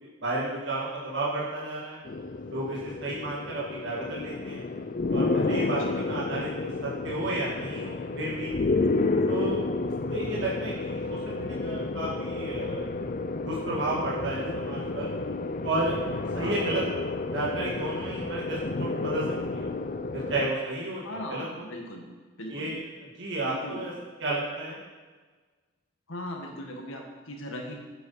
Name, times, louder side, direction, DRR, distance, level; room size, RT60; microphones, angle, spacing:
voice 1, 0.0-2.0 2.5-4.6 5.1-8.5 9.3-9.7 10.1-12.8 13.5-15.1 15.6-16.8 17.3-19.2 19.5-19.6 20.1-21.6 22.5-22.8 23.2-23.9 24.2-24.8, right 2 dB, 55° right, -6 dB, 2.0 m, -32 dB
sound 1, 2.1-20.5, left 3 dB, 40° left, 0.4 m, -31 dB
voice 2, 16.4-16.7 21.0-22.1 22.4-22.7 23.5-23.9 26.1-27.7, left 1 dB, 70° left, 1 dB, 1.9 m, -38 dB
9.6 x 8.1 x 5.8 m, 1.4 s
head